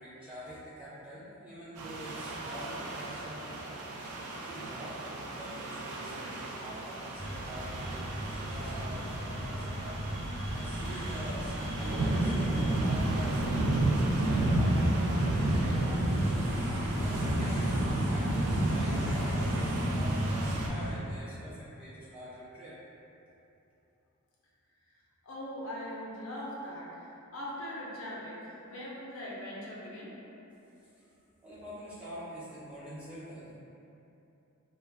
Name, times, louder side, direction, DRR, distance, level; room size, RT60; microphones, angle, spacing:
voice 1, 0.0-10.0 10.5-22.7 31.0-31.1 31.4-33.6, equal, 5° right, -12 dB, 0.6 m, -45 dB
sound 1, 1.8-20.7, right 2 dB, 85° right, 0.4 m, -33 dB
sound 2, 7.1-20.9, equal, 50° right, 1.0 m, -34 dB
voice 2, 25.2-30.1, equal, 65° left, -6 dB, 0.6 m, -41 dB
2.3 x 2.0 x 3.2 m, 2.9 s
head